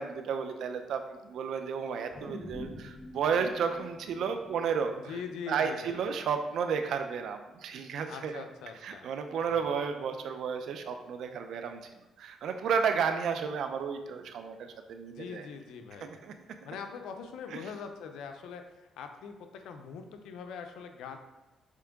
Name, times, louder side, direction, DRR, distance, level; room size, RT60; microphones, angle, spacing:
voice 1, 0.0-5.2 5.5-8.4 8.8-15.5 16.0-16.3 17.5-17.7, right 6 dB, 75° right, 7 dB, 0.6 m, -32 dB
sound 1, 2.1-6.6 7.0-7.1, left 2 dB, 35° left, 0.9 m, -47 dB
voice 2, 5.1-6.0 8.1-9.1 9.5-9.7 15.1-16.2 16.6-21.2, left 6 dB, 85° left, 6 dB, 0.7 m, -42 dB
7.6 x 3.4 x 3.7 m, 1.1 s
cardioid pair, 90°, 0 cm